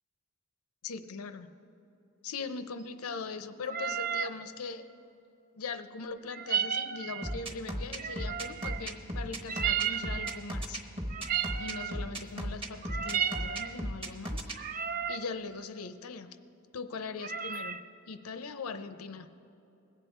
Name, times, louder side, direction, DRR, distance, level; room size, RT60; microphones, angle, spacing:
voice 1, 0.8-1.5 2.2-4.9 5.6-10.8 11.6-14.5 15.1-16.4 16.7-17.8 18.1-19.3, left 4 dB, 90° left, 11 dB, 0.6 m, -40 dB
sound 1, 3.7-4.4 6.3-7.4 8.0-8.9 9.5-10.4 11.1-12.0 12.7-13.7 14.5-15.3 17.2-17.8, right 8 dB, 40° right, 0.5 m, -33 dB
sound 2, 7.2-14.6, equal, 25° right, 1.1 m, -36 dB
21.0 x 8.3 x 4.4 m, 2.9 s
head